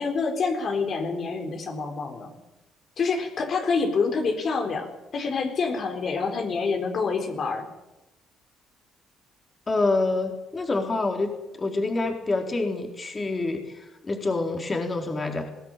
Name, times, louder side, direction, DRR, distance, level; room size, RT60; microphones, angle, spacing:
voice 1, 0.0-2.3 3.0-7.7, left 4 dB, 50° left, 3 dB, 4.2 m, -27 dB
voice 2, 9.7-11.3 11.6-15.5, left 3 dB, 25° left, 4 dB, 4.1 m, -27 dB
21.5 x 16.5 x 9.2 m, 0.95 s
cardioid pair, 100°, 0 cm